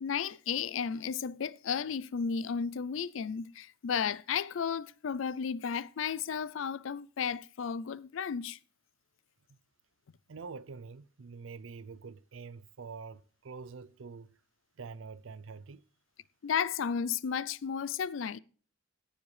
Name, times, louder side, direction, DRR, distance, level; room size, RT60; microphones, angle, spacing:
voice 1, 0.0-8.6 16.4-18.4, left 7 dB, 80° left, 0.4 m, -33 dB
voice 2, 10.3-14.4 14.8-15.8, right 5 dB, 80° right, 0.5 m, -46 dB
17.0 x 7.2 x 3.2 m
head